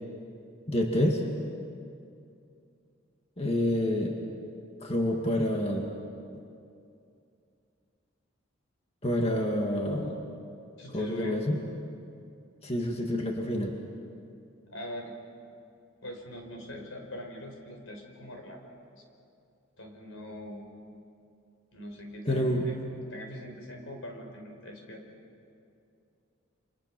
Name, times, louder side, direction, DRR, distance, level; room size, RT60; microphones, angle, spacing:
voice 1, 0.7-1.2 3.4-4.2 4.8-5.9 9.0-10.1 10.9-11.6 12.6-13.8 22.3-22.7, left 1 dB, 30° left, 1 dB, 2.1 m, -28 dB
voice 2, 10.8-11.4 14.7-15.1 16.0-18.7 19.8-20.7 21.7-22.8 23.1-25.0, left 1 dB, 85° left, 2 dB, 4.9 m, -42 dB
29.0 x 27.0 x 6.1 m, 2.5 s
head